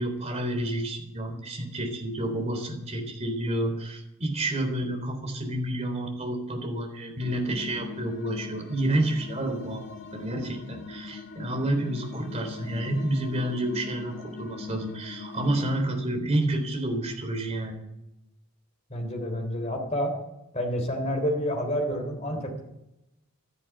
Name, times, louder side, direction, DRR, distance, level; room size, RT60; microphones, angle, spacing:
voice 1, 0.0-9.8 10.1-17.7, right 1 dB, 30° right, 4 dB, 3.6 m, -29 dB
sound 1, 7.2-15.7, left 4 dB, 55° left, 1.8 m, -41 dB
voice 2, 18.9-20.1 20.5-22.6, equal, 30° left, 2 dB, 3.4 m, -29 dB
13.0 x 11.0 x 9.2 m, 0.88 s
head